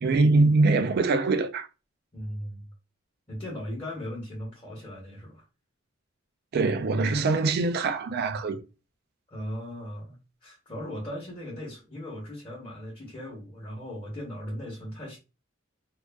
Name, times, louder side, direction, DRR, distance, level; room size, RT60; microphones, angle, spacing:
voice 1, 0.0-1.7 6.5-8.6, right 3 dB, 50° right, 0.3 m, -23 dB
voice 2, 2.1-2.7 3.3-5.4 9.3-15.2, equal, 25° left, 0.9 m, -38 dB
2.4 x 2.4 x 2.2 m
head